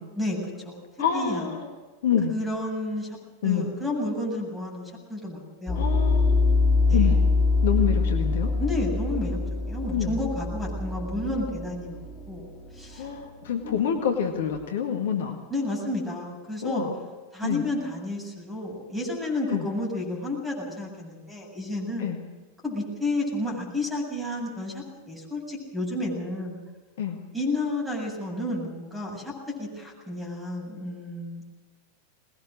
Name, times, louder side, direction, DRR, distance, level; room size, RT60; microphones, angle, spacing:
voice 1, 1.0-1.7 2.0-2.3 3.4-3.7 5.7-6.6 6.9-7.2 7.6-8.5 9.9-10.2 12.9-15.4 16.6-16.9 17.4-17.6 19.5-19.7 22.0-22.2 27.0-27.2, left 8 dB, 60° left, 4 dB, 1.9 m, -27 dB
voice 2, 2.3-3.2 3.4-5.8 6.9-7.1 8.6-9.4 9.7-12.0 12.3-12.4 12.7-13.1 13.6-14.1 15.5-16.9 17.3-22.1 22.6-26.6 27.3-29.3 29.6-31.5, left 1 dB, ahead, -1 dB, 8.0 m, -31 dB
sound 1, 5.7-14.4, left 3 dB, 20° left, 6.6 m, -25 dB
22.0 x 20.5 x 6.5 m, 1.3 s
figure-of-eight pair, 90°, 0 cm